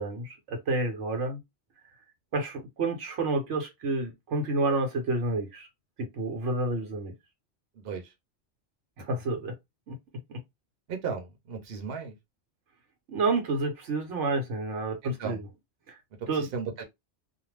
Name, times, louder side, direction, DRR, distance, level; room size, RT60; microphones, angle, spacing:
voice 1, 0.0-1.4 2.3-5.7 6.0-7.1 9.0-9.5 9.9-10.0 10.3-10.4 13.1-15.5 15.9-16.0 16.3-16.5, right 2 dB, 85° right, 1.2 m, -29 dB
voice 2, 10.9-12.1 15.0-15.4 16.4-16.8, right 5 dB, 60° right, 1.0 m, -35 dB
2.5 x 2.2 x 3.1 m
omnidirectional pair, 1.2 m